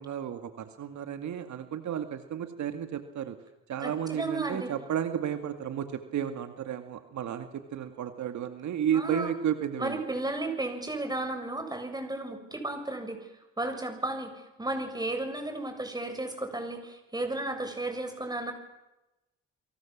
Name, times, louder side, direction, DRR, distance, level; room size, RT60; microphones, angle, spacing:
voice 1, 0.0-3.4 3.7-10.0, right 9 dB, 70° right, 8 dB, 2.2 m, -32 dB
voice 2, 3.8-4.7 8.9-9.3 9.8-13.3 13.6-18.5, right 2 dB, 15° right, 6 dB, 7.1 m, -34 dB
30.0 x 23.5 x 7.4 m, 0.98 s
cardioid pair, 90°, 30 cm